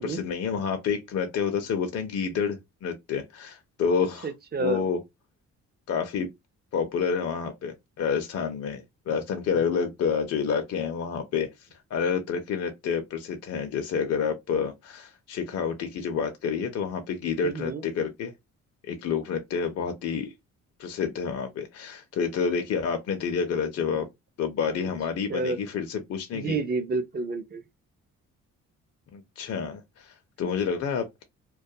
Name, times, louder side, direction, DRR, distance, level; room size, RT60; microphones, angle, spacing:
voice 1, 0.0-4.3 4.6-5.0 5.9-6.3 6.7-18.3 18.8-20.3 20.8-24.1 24.4-26.6 29.1-31.2, left 6 dB, 55° left, 0.6 m, -29 dB
voice 2, 4.2-4.8 17.4-17.8 24.7-24.8 25.3-25.6 26.3-27.6, right 3 dB, 35° right, 0.5 m, -29 dB
2.3 x 2.2 x 2.7 m
cardioid pair, 90°, 30 cm